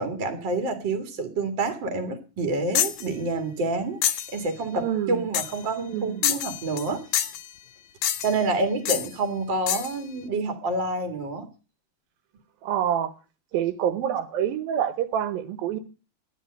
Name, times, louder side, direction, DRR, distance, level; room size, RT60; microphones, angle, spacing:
voice 1, 0.0-7.0 8.2-11.5, right 3 dB, 40° right, 2.3 m, -28 dB
sound 1, 2.7-3.1 4.0-4.3 5.3-5.6 6.2-6.9 7.1-7.5 8.0-8.4 8.9-9.1 9.7-9.9, left 11 dB, 70° left, 1.8 m, -26 dB
voice 2, 4.7-5.2 5.9-6.2 12.6-13.1 13.5-15.8, right 10 dB, 85° right, 3.0 m, -27 dB
12.5 x 10.5 x 6.6 m
omnidirectional pair, 4.1 m